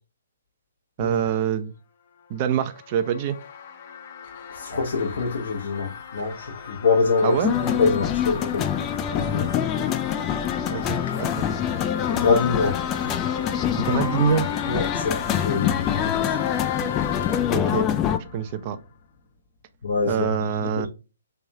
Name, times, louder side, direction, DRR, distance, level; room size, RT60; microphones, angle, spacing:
voice 1, 1.0-1.7 2.3-3.4 7.2-7.6 10.7-11.5 13.8-14.5 17.5-17.8 18.3-18.8 20.1-20.9, right 8 dB, 40° right, 0.5 m, -25 dB
sound 1, 2.2-19.2, left 7 dB, 45° left, 0.7 m, -36 dB
voice 2, 4.5-8.7 9.1-9.6 12.1-12.8 14.7-16.3 19.8-20.9, left 4 dB, 70° left, 1.0 m, -25 dB
Jemaa el-Fnaa Marrakech (soundscape), 7.4-18.2, left 9 dB, 25° left, 0.3 m, -25 dB
3.5 x 3.3 x 2.8 m
hypercardioid pair, 135°, 0 cm